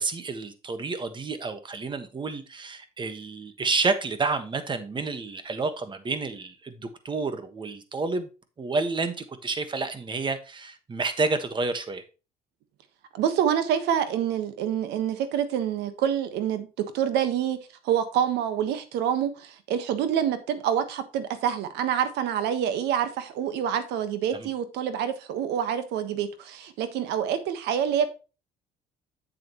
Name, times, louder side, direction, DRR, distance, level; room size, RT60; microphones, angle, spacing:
voice 1, 0.0-6.7 7.0-8.3 8.6-9.1 9.4-12.0 24.4-24.5, right 3 dB, 30° right, 1.4 m, -29 dB
voice 2, 13.1-17.6 17.8-28.1, right 9 dB, 85° right, 1.3 m, -27 dB
7.8 x 7.7 x 3.0 m
cardioid pair, 110°, 17 cm